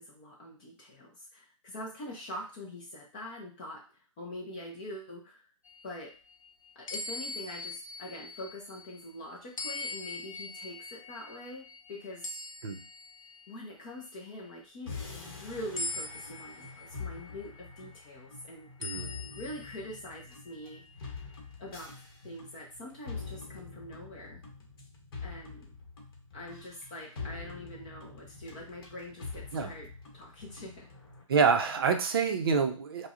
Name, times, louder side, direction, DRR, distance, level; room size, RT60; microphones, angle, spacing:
voice 1, 0.0-5.4 5.8-6.1 6.8-12.3 13.5-19.0 19.3-20.8 21.6-21.9 22.2-24.4 25.2-25.7 26.3-29.9 30.1-30.9, left 1 dB, 15° left, -2 dB, 0.3 m, -44 dB
sound 1, 5.7-9.1 9.6-13.5 14.0-14.3 15.8-17.8 18.8-20.8, left 2 dB, 70° left, 0.6 m, -42 dB
sound 2, 14.9-31.2, left 4 dB, 45° left, 1.0 m, -45 dB
voice 2, 31.3-33.1, right 5 dB, 45° right, 5 dB, 0.5 m, -27 dB
4.6 x 2.0 x 2.4 m, 0.36 s
hypercardioid pair, 155°, 18 cm